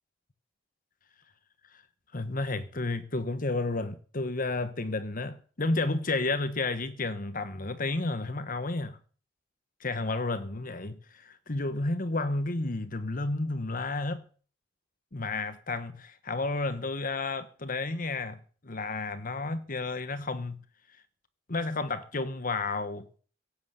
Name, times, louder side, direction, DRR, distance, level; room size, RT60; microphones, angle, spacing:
voice 1, 2.1-9.0 9.8-14.2 15.1-20.6 21.5-23.2, left 3 dB, 45° left, 1.2 m, -31 dB
17.5 x 8.2 x 8.1 m
head